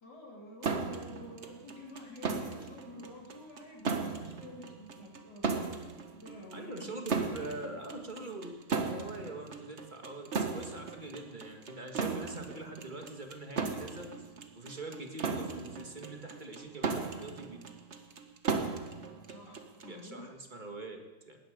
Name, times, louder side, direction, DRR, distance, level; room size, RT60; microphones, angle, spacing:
voice 1, 0.0-5.9 6.2-7.0 19.3-20.3, left 1 dB, 90° left, -2 dB, 3.8 m, -49 dB
sound 1, 0.6-20.0, right 4 dB, 45° right, 1.4 m, -37 dB
voice 2, 6.5-14.1 14.6-17.6 19.9-21.4, right 2 dB, 30° right, 3 dB, 1.9 m, -44 dB
18.5 x 13.5 x 5.1 m, 1.2 s
omnidirectional pair, 1.8 m